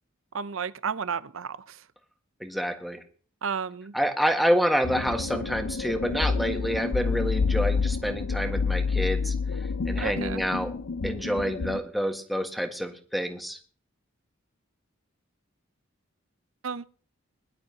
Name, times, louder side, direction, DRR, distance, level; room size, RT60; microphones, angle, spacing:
voice 1, 0.3-1.8 3.4-3.9 10.0-10.4 16.6-16.8, right 6 dB, 80° right, 0.6 m, -32 dB
voice 2, 2.4-3.0 3.9-10.7 11.0-13.6, equal, ahead, 1.6 m, -28 dB
sound 1, 4.8-11.8, left 4 dB, 70° left, 0.6 m, -28 dB
22.0 x 11.5 x 2.9 m
head